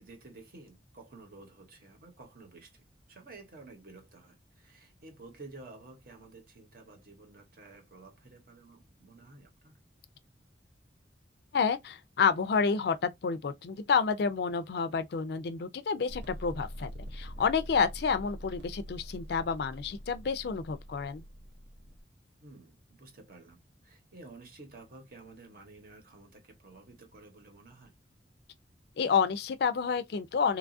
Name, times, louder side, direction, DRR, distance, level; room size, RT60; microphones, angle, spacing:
voice 1, 0.0-9.8 22.4-28.0, right 3 dB, 55° right, 0.9 m, -52 dB
voice 2, 11.5-21.3 29.0-30.6, left 5 dB, 60° left, 0.4 m, -29 dB
sound 1, 16.1-22.0, equal, 80° right, 0.7 m, -44 dB
2.9 x 2.3 x 2.5 m
head